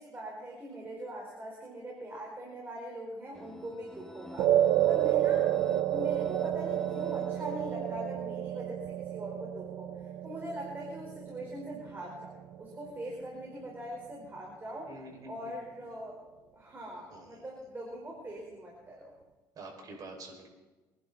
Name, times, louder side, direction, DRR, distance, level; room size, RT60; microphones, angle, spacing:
voice 1, 0.0-5.5 5.9-14.9 15.3-16.2 16.5-19.1, right 1 dB, 30° right, -2 dB, 4.7 m, -42 dB
sound 1, 3.3-8.1, right 1 dB, 5° left, 1.7 m, -50 dB
sound 2, 4.4-12.9, right 12 dB, 80° right, 0.8 m, -30 dB
voice 2, 14.9-15.5 17.1-17.5 19.6-20.5, right 2 dB, 55° right, 1 dB, 6.0 m, -47 dB
25.0 x 11.0 x 4.2 m, 1.2 s
cardioid pair, 85°, 8 cm